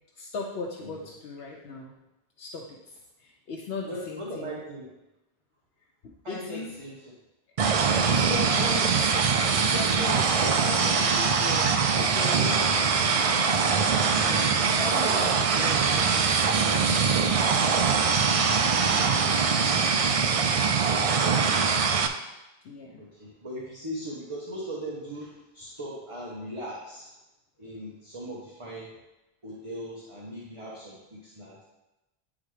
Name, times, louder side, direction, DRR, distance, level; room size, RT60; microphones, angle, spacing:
voice 1, 0.2-1.9 2.4-4.6 6.0-6.7 8.1-8.9 9.5-13.4 14.2-19.3 22.6-23.0, left 3 dB, 85° left, -1 dB, 0.9 m, -38 dB
voice 2, 3.9-4.9 6.2-7.1 23.0-27.1 27.6-28.9 29.4-31.6, equal, 30° right, -6 dB, 1.1 m, -39 dB
sound 1, 7.6-22.1, right 5 dB, 55° right, 0.4 m, -23 dB
9.8 x 4.0 x 3.2 m, 0.97 s
omnidirectional pair, 1.0 m